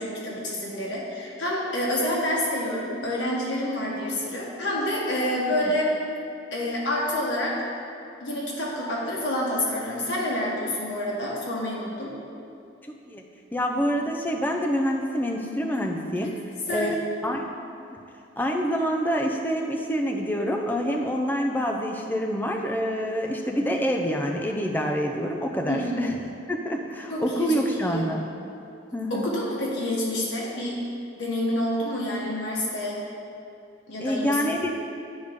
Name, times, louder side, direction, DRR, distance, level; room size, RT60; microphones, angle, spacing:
voice 1, 0.0-5.9 6.5-7.5 8.2-12.1 16.7-16.9 25.7-26.0 27.1-27.5 27.8-28.1 29.1-30.8 31.2-33.0 33.9-34.3, left 1 dB, 80° left, -5 dB, 1.5 m, -28 dB
voice 2, 13.5-16.4 16.7-17.4 17.8-18.0 18.4-26.2 26.5-28.3 28.9-29.3 34.0-34.7, equal, 10° left, 2 dB, 0.5 m, -26 dB
8.0 x 3.6 x 5.2 m, 2.5 s
head